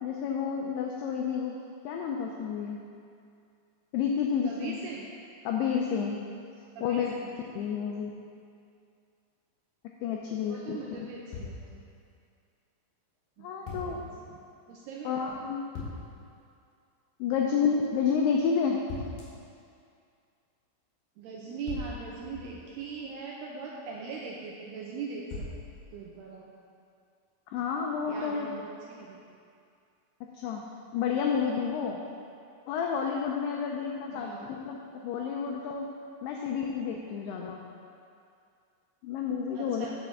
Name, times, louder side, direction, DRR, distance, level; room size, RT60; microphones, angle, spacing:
voice 1, 0.0-1.6 1.8-2.8 3.9-4.8 5.4-6.2 6.8-7.1 7.6-8.1 10.0-10.8 13.4-14.0 15.0-15.7 17.2-18.8 27.5-28.5 30.2-30.6 30.9-32.0 32.7-34.8 35.0-35.9 36.2-37.6 39.0-39.9, left 6 dB, 90° left, 0 dB, 2.3 m, -30 dB
voice 2, 4.4-5.1 6.8-7.3 10.5-11.8 13.4-13.6 13.9-14.4 14.7-15.2 21.2-25.5 25.9-26.5 28.1-29.4 34.1-34.4 39.5-39.9, right 4 dB, 85° right, -2 dB, 2.4 m, -41 dB
sound 1, 11.3-12.1 13.7-14.2 15.7-16.3 18.9-19.5 21.7-23.1 25.3-26.2, left 3 dB, 65° left, 4.5 m, -41 dB
9.0 x 6.1 x 7.2 m, 2.4 s
omnidirectional pair, 5.5 m